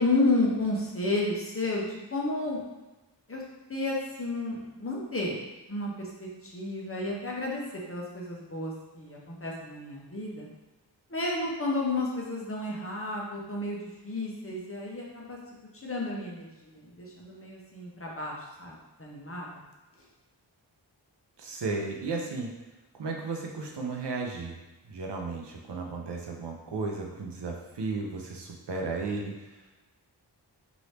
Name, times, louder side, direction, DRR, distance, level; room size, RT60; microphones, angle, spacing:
voice 1, 0.0-2.6 3.3-3.4 3.7-5.4 5.7-7.6 7.9-10.5 11.1-15.4 15.8-19.6, left 2 dB, 30° left, -3 dB, 0.8 m, -31 dB
voice 2, 21.4-22.5 23.0-24.6 24.9-29.5, right 3 dB, 70° right, 1 dB, 0.7 m, -34 dB
3.0 x 2.7 x 3.3 m, 1.1 s
wide cardioid pair, 50°, 43 cm